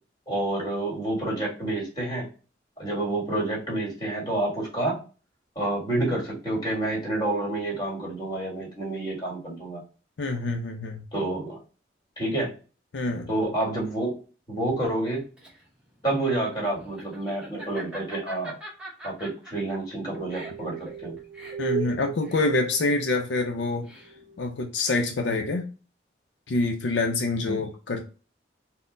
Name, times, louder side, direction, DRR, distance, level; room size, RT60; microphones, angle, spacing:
voice 1, 0.3-2.3 2.8-5.0 5.5-9.8 11.1-11.6 12.2-12.5 13.3-14.2 14.5-15.3 16.0-18.5 19.0-21.1 27.4-27.6, right 2 dB, 20° left, 1.7 m, -28 dB
voice 2, 10.2-11.0 12.9-13.3 21.6-23.9 24.4-25.7 26.5-28.0, left 2 dB, 80° left, 0.5 m, -26 dB
Laughter, 15.0-24.4, right 1 dB, 5° right, 1.0 m, -44 dB
sound 1, 20.2-23.1 24.0-24.5, right 7 dB, 40° right, 0.4 m, -36 dB
4.1 x 2.0 x 3.8 m
head